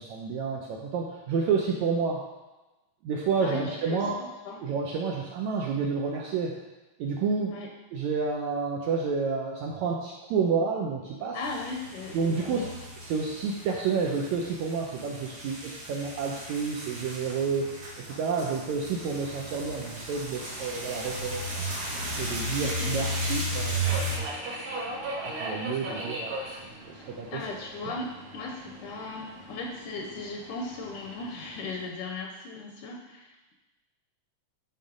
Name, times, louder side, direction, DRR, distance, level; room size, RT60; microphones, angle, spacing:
voice 1, 0.0-2.3 3.0-4.2 4.6-6.6 7.0-7.6 7.9-11.4 12.1-12.7 13.0-17.7 18.0-21.6 22.2-24.0 25.4-26.4 27.0-27.4 27.9-28.0, right 5 dB, 75° right, -1 dB, 1.7 m, -29 dB
voice 2, 3.4-4.6 7.5-7.7 11.3-12.7 22.5-23.0 25.9-26.0 26.9-33.5, left 3 dB, 75° left, 0 dB, 2.0 m, -38 dB
sound 1, 11.4-24.2, right 1 dB, 45° right, 1.4 m, -35 dB
Subway metro underground, 20.4-31.9, right 1 dB, 60° right, 2.2 m, -40 dB
10.5 x 3.6 x 5.0 m, 1.1 s
omnidirectional pair, 4.0 m